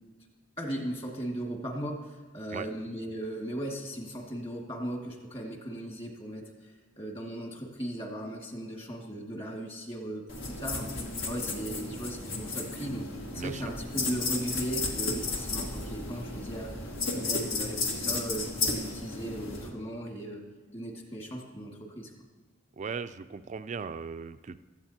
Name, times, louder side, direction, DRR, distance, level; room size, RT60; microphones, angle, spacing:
voice 1, 0.6-10.9 11.3-16.7 17.1-20.4 20.7-22.1, right 1 dB, 30° left, 1 dB, 1.9 m, -37 dB
sound 1, 10.3-19.7, left 3 dB, 75° left, 1.7 m, -34 dB
sound 2, 12.9-18.1, equal, 10° left, 0.8 m, -47 dB
voice 2, 13.3-13.7 22.7-24.6, right 5 dB, 35° right, 12 dB, 0.3 m, -38 dB
16.5 x 13.0 x 2.8 m, 1.3 s
head